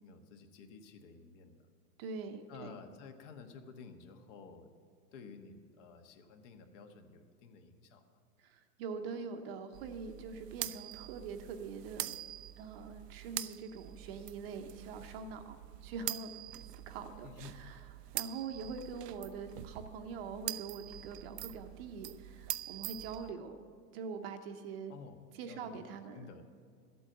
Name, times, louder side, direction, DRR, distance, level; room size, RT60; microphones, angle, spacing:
voice 1, 0.0-1.7 2.5-4.7 5.1-8.2 17.2-17.6 24.9-25.8 26.1-26.4, left 5 dB, 45° left, 6 dB, 1.4 m, -52 dB
voice 2, 2.0-2.7 8.4-12.2 12.6-15.6 15.8-16.3 16.9-17.3 17.5-17.8 18.1-23.6 23.9-24.9 25.4-26.3, right 5 dB, 40° right, 7 dB, 0.8 m, -43 dB
sound 1, 9.7-23.3, right 14 dB, 75° right, 0.6 m, -44 dB
13.0 x 8.5 x 7.9 m, 2.1 s
hypercardioid pair, 150°, 48 cm